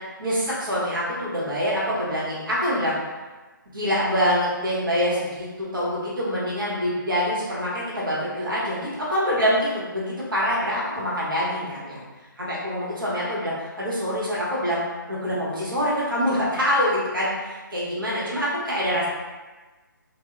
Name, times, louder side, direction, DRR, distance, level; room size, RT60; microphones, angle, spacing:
voice 1, 0.2-2.9 3.7-12.0 12.4-14.8 15.1-19.1, equal, 80° right, -7 dB, 1.1 m, -25 dB
2.7 x 2.0 x 2.3 m, 1.2 s
figure-of-eight pair, 150°, 11 cm